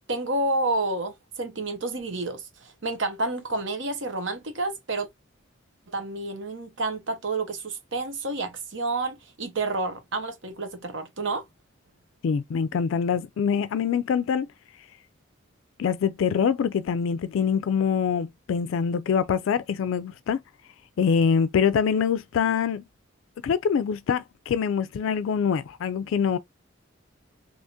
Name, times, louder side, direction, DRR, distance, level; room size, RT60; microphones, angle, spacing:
voice 1, 0.1-5.1 5.9-11.4, right 2 dB, 70° right, 1.1 m, -29 dB
voice 2, 12.2-14.5 15.8-20.4 21.0-22.8 23.4-26.4, left 7 dB, 75° left, 0.3 m, -24 dB
3.5 x 2.9 x 2.5 m
head